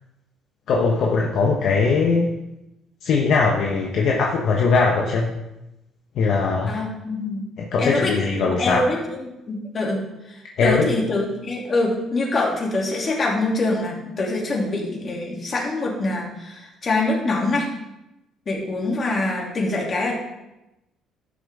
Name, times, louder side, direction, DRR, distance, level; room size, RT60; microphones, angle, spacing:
voice 1, 0.7-2.3 3.0-5.3 6.2-6.7 7.7-8.9 10.6-10.9, left 4 dB, 65° left, -1 dB, 1.2 m, -20 dB
voice 2, 6.6-7.5 7.8-10.0 10.3-17.7 18.5-20.2, left 2 dB, 35° left, -2 dB, 3.0 m, -24 dB
13.0 x 7.2 x 3.8 m, 0.93 s
cardioid pair, 105°, 0 cm